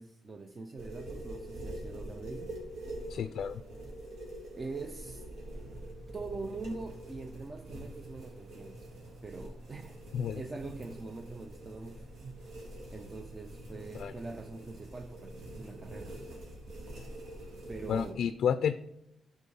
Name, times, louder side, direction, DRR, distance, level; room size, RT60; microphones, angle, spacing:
voice 1, 0.0-2.5 4.5-5.3 6.1-8.9 9.2-12.4 12.9-16.1 17.7-18.2, right 3 dB, 25° right, 7 dB, 0.5 m, -43 dB
sound 1, 0.8-18.1, right 1 dB, 85° right, 2.6 m, -45 dB
voice 2, 3.1-3.6 10.1-10.4 13.9-14.1 17.9-18.7, left 8 dB, 70° left, 11 dB, 0.3 m, -30 dB
sound 2, 5.5-16.0, right 3 dB, 10° right, 2.4 m, -54 dB
12.0 x 4.7 x 5.5 m, 0.86 s
cardioid pair, 135°, 0 cm